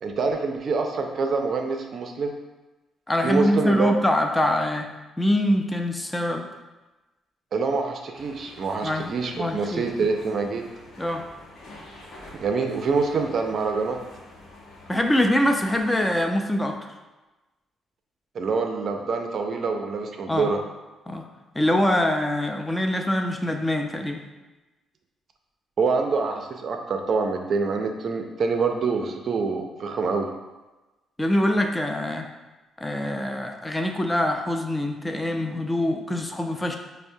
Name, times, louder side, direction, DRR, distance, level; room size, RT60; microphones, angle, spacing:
voice 1, 0.0-2.3 3.2-3.9 7.5-10.6 12.4-14.0 18.3-20.6 25.8-30.3, right 4 dB, 55° right, 4 dB, 0.4 m, -26 dB
voice 2, 3.1-6.5 8.8-9.8 11.0-11.2 14.9-16.9 20.3-20.5 21.1-21.3 21.6-24.2 31.2-32.3 32.8-36.8, left 1 dB, 10° left, 4 dB, 0.3 m, -24 dB
sound 1, 8.1-16.2, left 2 dB, 65° left, 0.8 m, -47 dB
5.4 x 2.0 x 2.6 m, 1.1 s
cardioid pair, 90°, 0 cm